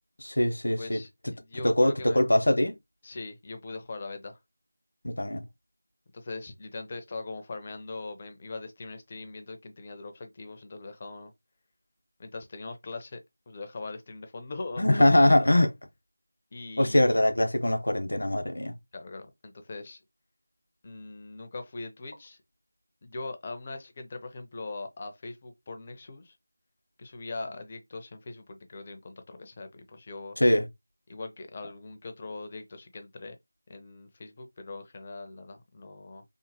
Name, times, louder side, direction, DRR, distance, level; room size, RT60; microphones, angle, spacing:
voice 1, 0.2-1.0 1.6-2.7 5.0-5.4 14.8-15.7 16.8-18.7 30.4-30.7, left 1 dB, 75° left, 0.7 m, -22 dB
voice 2, 0.8-2.2 3.0-4.4 6.1-11.3 12.2-13.2 13.5-15.5 16.5-17.2 18.9-20.0 20.8-22.4 23.0-26.3 27.0-30.4 31.1-33.4 33.7-36.2, left 3 dB, 20° left, 0.4 m, -41 dB
2.9 x 2.1 x 2.7 m
figure-of-eight pair, 175°, 0 cm